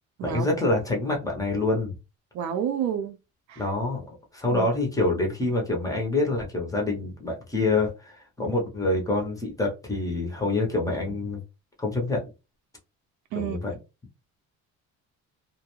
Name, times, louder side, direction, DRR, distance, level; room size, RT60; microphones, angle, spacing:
voice 1, 0.2-1.9 3.6-11.4 11.8-12.3 13.4-13.7, left 2 dB, 10° left, 0.5 m, -26 dB
voice 2, 2.3-3.2 3.5-3.6 4.5-4.7 13.3-13.6, right 9 dB, 60° right, 0.5 m, -29 dB
2.4 x 2.1 x 2.9 m
cardioid pair, 160°, 32 cm